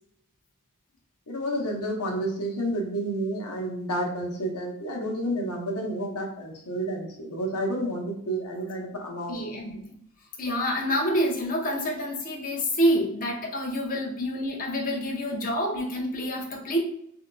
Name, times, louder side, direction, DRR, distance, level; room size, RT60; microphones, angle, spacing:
voice 1, 1.3-9.5, right 1 dB, 80° left, 1 dB, 0.8 m, -30 dB
voice 2, 9.3-10.0 10.4-16.8, equal, 40° left, -1 dB, 0.7 m, -27 dB
3.7 x 2.7 x 2.2 m, 0.71 s
head